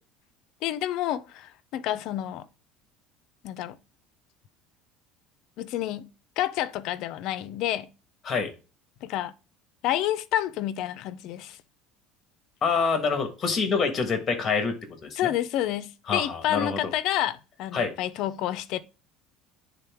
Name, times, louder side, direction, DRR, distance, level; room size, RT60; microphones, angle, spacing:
voice 1, 0.6-2.4 3.4-3.8 5.6-6.1 6.4-7.9 9.0-9.3 9.8-11.6 15.2-18.8, left 12 dB, 50° left, 0.5 m, -29 dB
voice 2, 12.6-14.7 15.0-15.3 16.1-16.9 17.7-17.9, left 5 dB, 25° left, 1.4 m, -26 dB
9.4 x 3.6 x 3.5 m
cardioid pair, 165°, 0 cm